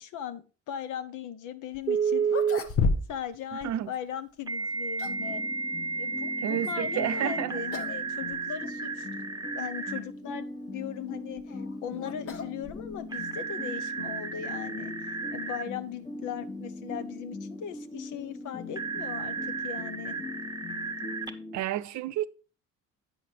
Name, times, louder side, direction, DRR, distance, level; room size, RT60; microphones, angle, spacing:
voice 1, 0.0-2.4 3.1-5.4 5.9-9.1 9.5-14.9 15.3-20.2, left 9 dB, 70° left, 0.9 m, -38 dB
sound 1, 1.7-1.8 2.2-3.4 3.6-3.7 4.6-5.3 7.1-7.4 7.7-8.0 8.3-8.4 9.2-9.3 11.1-13.2, left 4 dB, 45° left, 1.0 m, -32 dB
Telephone, 1.9-2.6 4.5-10.0 13.1-15.6 18.8-21.3, right 5 dB, 15° right, 0.9 m, -32 dB
voice 2, 3.5-3.9 6.4-7.6 21.5-22.3, right 13 dB, 60° right, 0.6 m, -31 dB
sound 2, 5.0-21.6, left 3 dB, 20° left, 1.2 m, -41 dB
8.9 x 5.1 x 4.6 m
supercardioid pair, 85°, 32 cm